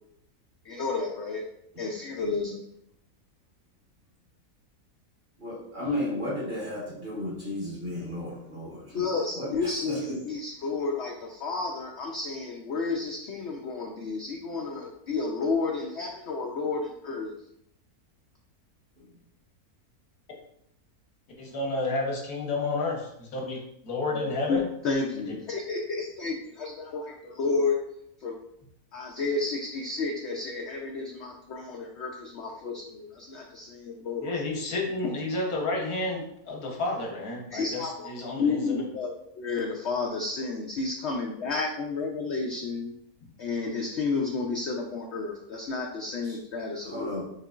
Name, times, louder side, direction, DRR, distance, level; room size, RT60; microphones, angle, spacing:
voice 1, 0.6-1.5 1.8-2.6 8.9-17.3 24.1-27.8 28.2-28.4 28.9-34.4 35.0-35.1 37.5-38.1 38.4-42.9 43.4-47.3, left 4 dB, 60° left, 0 dB, 0.7 m, -31 dB
voice 2, 5.4-9.0 9.4-9.5 9.9-10.2 46.3-46.4 46.9-47.3, left 1 dB, 35° right, -7 dB, 1.5 m, -33 dB
voice 3, 21.4-24.7 34.2-38.8, left 2 dB, 85° left, -1 dB, 1.6 m, -31 dB
6.5 x 3.3 x 2.4 m, 0.75 s
omnidirectional pair, 1.6 m